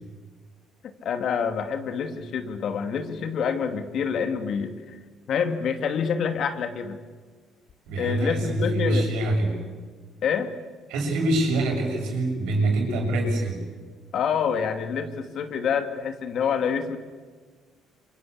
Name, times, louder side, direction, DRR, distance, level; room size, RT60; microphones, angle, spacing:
voice 1, 0.8-5.0 5.3-7.0 8.0-9.1 10.2-10.5 14.1-17.0, left 6 dB, 60° left, 7 dB, 2.6 m, -27 dB
voice 2, 7.9-9.6 10.9-13.7, right 1 dB, 80° right, 1 dB, 7.3 m, -25 dB
26.0 x 25.0 x 8.5 m, 1.4 s
supercardioid pair, 70°, 0 cm